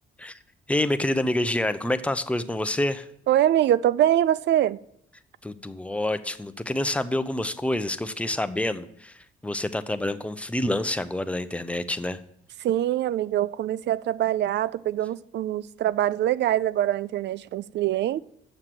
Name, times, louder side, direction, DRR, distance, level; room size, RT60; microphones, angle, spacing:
voice 1, 0.7-3.1 5.4-12.2, left 1 dB, 5° left, 0.6 m, -27 dB
voice 2, 3.3-4.8 12.6-18.2, right 12 dB, 60° right, 0.4 m, -24 dB
7.4 x 6.6 x 7.6 m
cardioid pair, 90°, 20 cm